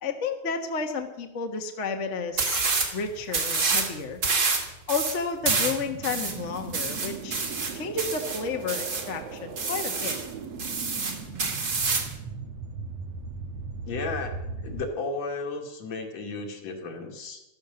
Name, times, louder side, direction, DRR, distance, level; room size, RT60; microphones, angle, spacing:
voice 1, 0.0-4.2 4.9-7.5 7.7-10.2, left 4 dB, 35° left, 4 dB, 1.3 m, -31 dB
sound 1, 2.4-2.9 3.3-3.9 4.2-9.1 9.6-10.3 10.6-12.1, right 4 dB, 35° right, 2.2 m, -27 dB
sound 2, 5.4-14.9, right 5 dB, 60° right, 2.3 m, -39 dB
voice 2, 13.9-14.4 14.6-17.4, left 3 dB, 65° left, 2 dB, 3.4 m, -33 dB
13.5 x 13.5 x 7.1 m, 0.88 s
omnidirectional pair, 3.3 m